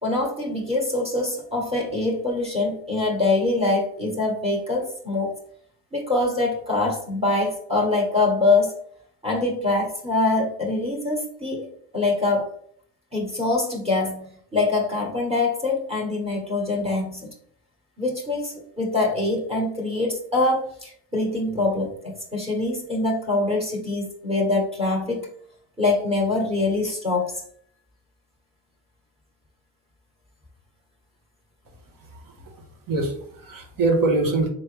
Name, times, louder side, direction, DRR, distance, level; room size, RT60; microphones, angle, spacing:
voice 1, 0.0-5.3 5.9-8.8 9.2-11.7 11.9-12.4 13.1-17.3 18.0-25.3 25.8-27.4, left 2 dB, 15° right, -2 dB, 1.6 m, -24 dB
voice 2, 32.9-34.5, right 3 dB, 50° right, 3 dB, 1.4 m, -23 dB
4.2 x 3.3 x 3.4 m, 0.62 s
supercardioid pair, 75°, 43 cm